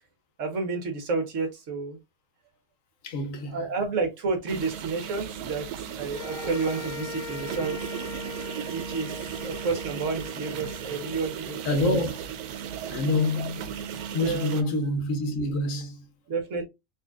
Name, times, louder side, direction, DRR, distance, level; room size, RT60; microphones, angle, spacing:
voice 1, 0.4-2.0 3.5-7.9 8.7-12.0 14.0-14.6 16.3-16.6, right 4 dB, 60° right, 1.3 m, -31 dB
voice 2, 3.0-3.6 11.6-12.2 12.9-13.7 14.1-16.1, left 2 dB, 65° left, 1.1 m, -27 dB
sound 1, 4.5-14.6, right 8 dB, 85° right, 1.1 m, -36 dB
sound 2, 6.1-12.5, left 3 dB, 85° left, 0.3 m, -41 dB
4.2 x 2.8 x 2.3 m
omnidirectional pair, 1.5 m